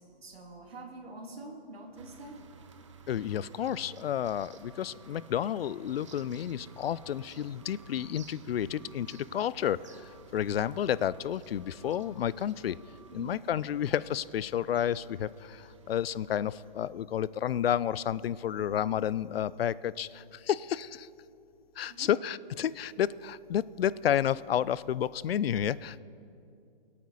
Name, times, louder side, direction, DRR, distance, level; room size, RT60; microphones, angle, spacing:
voice 1, 0.0-2.4 13.1-13.4 21.9-22.2, right 2 dB, 85° right, 2 dB, 2.5 m, -46 dB
sound 1, 2.0-16.9, right 5 dB, 30° right, 0.5 m, -54 dB
voice 2, 3.1-12.8 13.1-21.1 21.8-26.0, left 10 dB, 80° left, 19 dB, 0.5 m, -31 dB
22.5 x 8.6 x 4.1 m, 2.5 s
hypercardioid pair, 165°, 29 cm